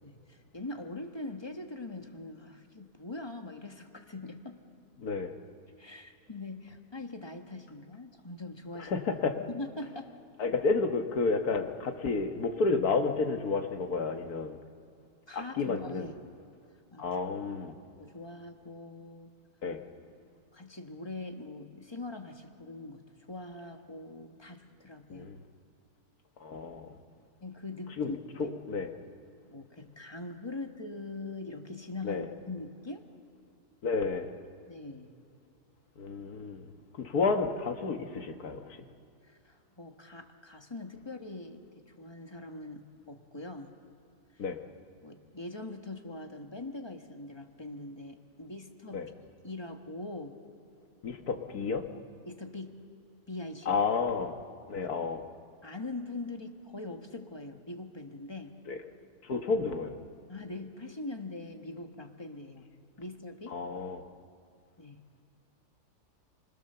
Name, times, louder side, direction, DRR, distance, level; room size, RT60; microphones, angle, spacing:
voice 1, 0.0-4.6 5.8-8.9 9.5-10.1 10.4-10.5 15.3-16.1 16.9-17.1 18.0-19.3 20.2-23.0 23.3-25.3 27.4-28.6 29.5-33.0 34.7-35.2 39.2-43.7 44.3-44.4 45.0-49.0 49.4-50.4 52.2-52.8 53.3-53.8 55.6-58.6 60.3-63.6 64.8-65.0, left 2 dB, 15° left, 4 dB, 1.4 m, -42 dB
voice 2, 5.0-5.3 8.8-9.4 10.4-14.6 15.3-16.1 17.0-17.8 19.6-19.8 25.1-25.4 26.4-26.9 28.0-28.1 28.4-28.9 32.0-32.3 33.8-34.3 36.0-36.7 37.0-38.6 44.4-44.6 48.9-49.1 51.0-51.8 53.7-54.4 54.7-55.2 58.7-58.8 59.2-60.0 63.5-64.0, left 4 dB, 65° left, 5 dB, 1.9 m, -31 dB
29.5 x 21.0 x 6.9 m, 2.5 s
omnidirectional pair, 1.8 m